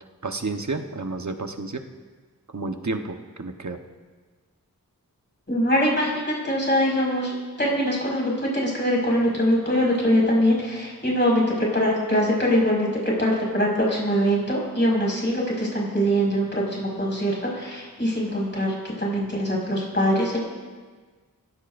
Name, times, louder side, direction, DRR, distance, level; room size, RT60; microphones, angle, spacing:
voice 1, 0.2-1.8 2.5-3.8, right 3 dB, 55° right, 5 dB, 1.3 m, -30 dB
voice 2, 5.5-20.4, equal, 30° left, -4 dB, 5.6 m, -23 dB
25.5 x 15.5 x 2.7 m, 1.4 s
wide cardioid pair, 65°, 35 cm